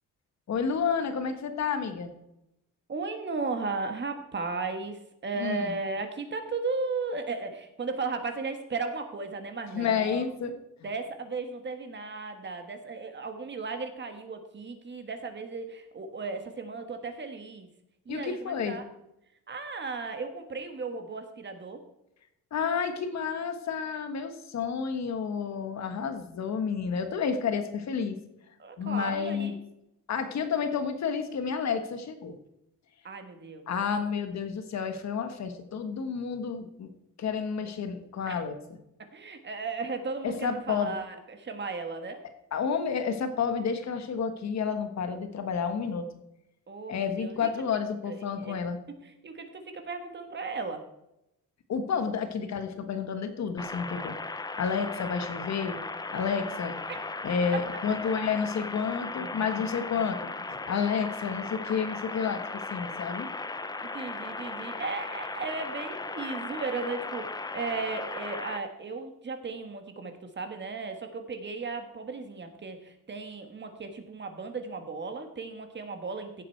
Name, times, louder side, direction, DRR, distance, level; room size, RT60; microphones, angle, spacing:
voice 1, 0.5-2.1 5.4-5.7 9.7-10.6 18.1-18.8 22.5-28.2 28.8-29.5 30.1-32.4 33.7-36.9 37.2-38.8 40.2-40.9 42.5-46.1 46.9-48.8 51.7-55.8 56.1-56.8 57.2-63.3, left 6 dB, 55° left, 8 dB, 1.4 m, -30 dB
voice 2, 2.9-10.2 10.8-17.7 18.0-18.8 19.5-21.8 28.6-29.5 33.0-33.7 38.3-38.4 39.1-42.2 46.7-47.5 48.1-48.6 49.0-50.8 56.9-57.1 63.8-76.4, right 4 dB, 35° right, 7 dB, 1.5 m, -35 dB
sound 1, 53.6-68.6, left 3 dB, 10° left, 0.5 m, -37 dB
15.5 x 7.6 x 4.5 m, 0.86 s
cardioid pair, 135°, 33 cm